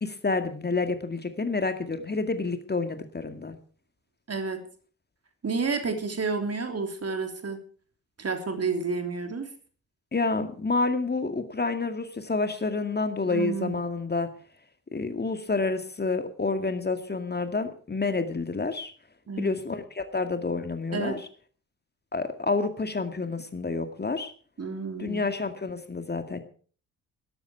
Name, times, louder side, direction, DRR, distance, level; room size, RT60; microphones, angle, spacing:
voice 1, 0.0-3.5 10.1-14.3 14.9-18.9 19.4-21.3 22.1-24.3 25.0-26.4, left 3 dB, 25° left, 8 dB, 2.1 m, -29 dB
voice 2, 4.3-4.6 5.4-7.6 8.2-9.5 13.3-13.8 19.3-19.5 20.9-21.2 24.6-25.3, right 4 dB, 35° right, 6 dB, 3.4 m, -30 dB
17.0 x 13.5 x 4.7 m, 0.43 s
figure-of-eight pair, 40°, 42 cm